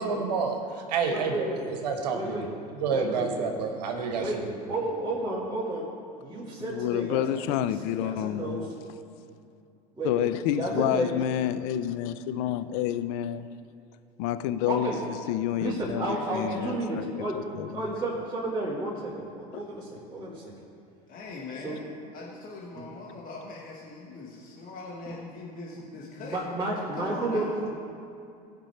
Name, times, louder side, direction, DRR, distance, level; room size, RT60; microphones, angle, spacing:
voice 1, 0.0-2.4 2.8-4.5, right 5 dB, 80° right, 3 dB, 1.1 m, -29 dB
voice 2, 1.1-1.7 2.1-2.5 2.9-3.5 4.1-4.4 4.7-5.9 6.2-7.7 7.9-8.6 10.0-11.2 14.7-15.0 15.5-17.4 17.7-20.4 21.6-21.8 25.1-25.2 25.7-25.8 26.2-27.8, right 2 dB, 15° right, -9 dB, 2.4 m, -32 dB
voice 3, 6.6-8.7 10.0-13.5 14.2-17.1 17.3-18.0 19.5-19.7, left 11 dB, 65° left, 12 dB, 0.5 m, -29 dB
voice 4, 16.1-16.8 21.1-21.9 22.1-26.4 26.9-27.5, left 3 dB, 40° left, -3 dB, 1.4 m, -41 dB
15.5 x 5.3 x 4.4 m, 2.5 s
hypercardioid pair, 85°, 21 cm